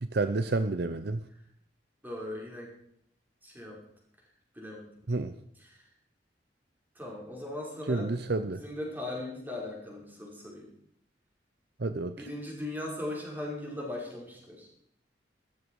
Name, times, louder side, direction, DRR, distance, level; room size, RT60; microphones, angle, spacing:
voice 1, 0.0-1.2 5.1-5.3 7.9-8.6 11.8-12.2, right 3 dB, 60° right, 10 dB, 0.7 m, -29 dB
voice 2, 2.0-2.7 3.4-3.8 4.5-4.9 5.6-5.9 7.0-8.1 8.5-10.7 12.2-14.7, left 1 dB, 10° right, -2 dB, 5.4 m, -39 dB
15.5 x 13.5 x 4.8 m, 0.73 s
head